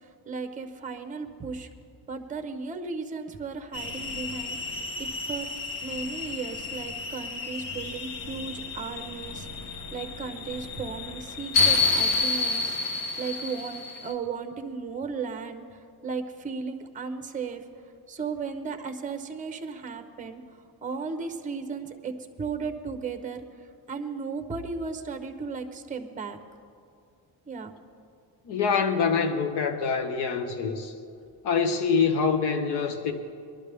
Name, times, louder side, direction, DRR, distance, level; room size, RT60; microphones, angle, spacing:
voice 1, 0.3-1.7 2.1-5.5 5.8-12.8 13.2-15.6 16.0-17.6 18.1-20.4 20.8-22.1 22.4-23.4 23.9-26.4 27.5-27.7, right 5 dB, 20° right, 7 dB, 0.7 m, -35 dB
sound 1, 3.7-14.1, left 4 dB, 55° left, 1.3 m, -30 dB
voice 2, 28.4-30.9 31.4-33.1, left 5 dB, 90° left, 5 dB, 1.2 m, -25 dB
21.0 x 12.0 x 3.4 m, 2.4 s
cardioid pair, 175°, 39 cm